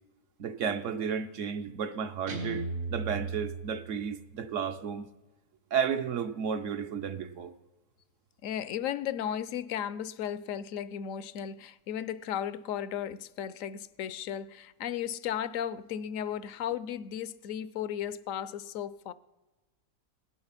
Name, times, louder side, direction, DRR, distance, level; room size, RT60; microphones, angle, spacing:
voice 1, 0.4-5.1 5.7-7.5, right 7 dB, 65° right, 1.0 m, -33 dB
Guitar, 2.3-4.3, right 3 dB, 85° right, 2.5 m, -37 dB
voice 2, 8.4-19.1, left 9 dB, 70° left, 1.0 m, -35 dB
17.0 x 10.5 x 5.7 m
omnidirectional pair, 1.5 m